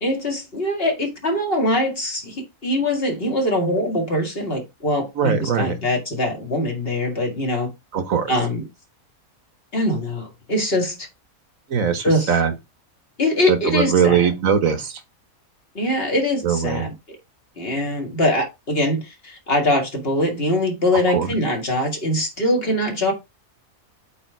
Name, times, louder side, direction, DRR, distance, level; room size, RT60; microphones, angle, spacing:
voice 1, 0.0-7.7 8.3-8.6 9.7-11.0 12.0-12.3 13.2-14.3 15.7-16.9 17.6-23.1, left 1 dB, 45° left, 2.2 m, -22 dB
voice 2, 5.2-5.7 7.9-8.3 11.7-12.5 13.5-15.0 16.4-16.9 21.1-21.3, right 7 dB, 70° right, 1.5 m, -20 dB
8.5 x 3.5 x 4.6 m
omnidirectional pair, 1.5 m